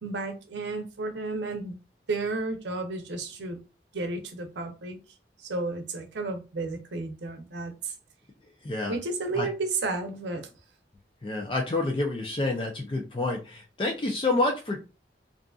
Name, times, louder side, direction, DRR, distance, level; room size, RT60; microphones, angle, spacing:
voice 1, 0.0-1.8 2.1-3.6 3.9-5.0 5.4-7.9 8.9-10.5, right 3 dB, 90° right, 6 dB, 0.6 m, -32 dB
voice 2, 8.6-9.0 9.3-9.5 11.2-14.8, left 2 dB, 30° left, 2 dB, 0.4 m, -28 dB
2.5 x 2.5 x 2.3 m, 0.30 s
head